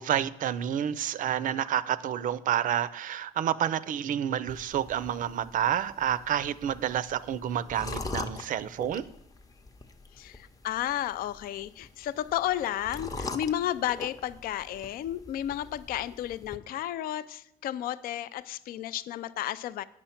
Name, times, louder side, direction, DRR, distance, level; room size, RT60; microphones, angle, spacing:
voice 1, 0.0-9.0, right 10 dB, 50° right, 0.5 m, -29 dB
sound 1, 4.5-16.6, left 3 dB, 20° left, 0.7 m, -43 dB
voice 2, 10.1-19.8, left 12 dB, 60° left, 0.4 m, -32 dB
8.9 x 6.2 x 5.8 m
cardioid pair, 110°, 17 cm